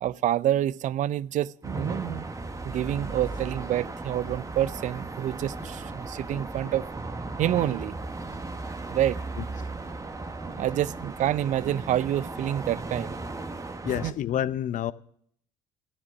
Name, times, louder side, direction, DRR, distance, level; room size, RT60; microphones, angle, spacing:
voice 1, 0.0-2.3 2.6-6.9 7.4-7.9 8.9-9.2 10.4-13.2 14.0-14.1, right 12 dB, 50° right, 0.4 m, -28 dB
sound 1, 1.6-14.1, right 3 dB, 20° right, 1.2 m, -36 dB
voice 2, 6.3-6.7 13.8-14.9, left 11 dB, 50° left, 0.7 m, -29 dB
13.5 x 9.7 x 5.9 m
hypercardioid pair, 65°, 16 cm